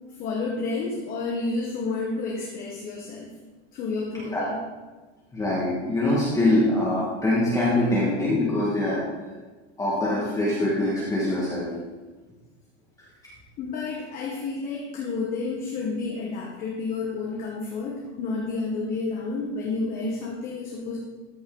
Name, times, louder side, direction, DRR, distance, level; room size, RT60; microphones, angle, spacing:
voice 1, 0.2-3.3 3.7-4.6 13.6-21.0, left 3 dB, 25° left, -2 dB, 0.9 m, -30 dB
voice 2, 5.3-9.0 9.8-11.7, left 1 dB, 10° left, -7 dB, 1.3 m, -23 dB
13.0 x 5.3 x 3.7 m, 1.3 s
supercardioid pair, 165°, 36 cm